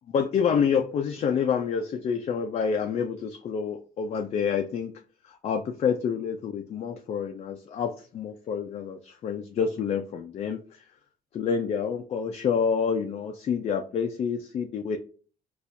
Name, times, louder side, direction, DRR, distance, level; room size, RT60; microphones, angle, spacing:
voice 1, 0.1-4.9 5.3-10.6 11.3-15.0, left 6 dB, 40° left, 5 dB, 0.4 m, -28 dB
4.1 x 2.3 x 2.6 m, 0.40 s
cardioid pair, 110°, 17 cm